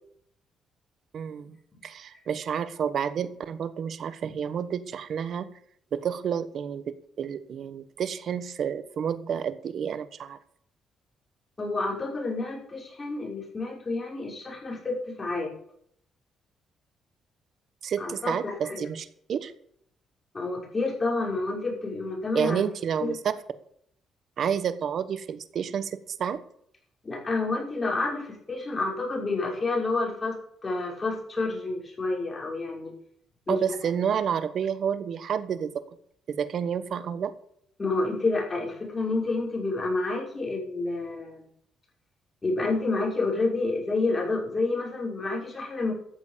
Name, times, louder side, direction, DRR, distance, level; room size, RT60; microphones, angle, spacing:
voice 1, 1.1-1.6 1.8-5.5 5.9-10.4 17.8-19.5 22.3-23.2 24.4-26.4 33.5-35.7 36.3-37.3, right 8 dB, 60° right, 13 dB, 1.2 m, -30 dB
voice 2, 11.6-15.5 18.0-18.8 20.3-22.6 23.0-23.2 27.0-30.4 30.6-32.9 33.5-33.6 37.8-41.5 42.4-45.9, left 3 dB, 25° left, -1 dB, 6.0 m, -29 dB
14.0 x 8.1 x 6.8 m, 0.67 s
cardioid pair, 90°, 0 cm